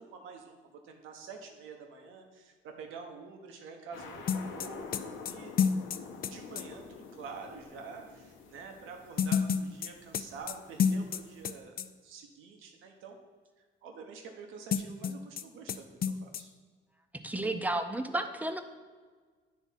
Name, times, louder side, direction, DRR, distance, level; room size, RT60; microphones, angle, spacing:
voice 1, 0.0-5.5 6.3-13.2 13.6-16.5, right 5 dB, 90° right, 3 dB, 0.9 m, -47 dB
sound 1, 3.9-11.6, left 5 dB, 75° left, 0.8 m, -48 dB
sound 2, 4.3-6.7 9.2-11.5 11.8-11.9 14.7-15.4 15.7-15.8 16.0-16.4, left 7 dB, 50° left, 0.4 m, -29 dB
voice 2, 17.2-18.6, right 2 dB, 10° right, 6 dB, 0.6 m, -32 dB
9.6 x 3.5 x 4.1 m, 1.5 s
cardioid pair, 90°, 20 cm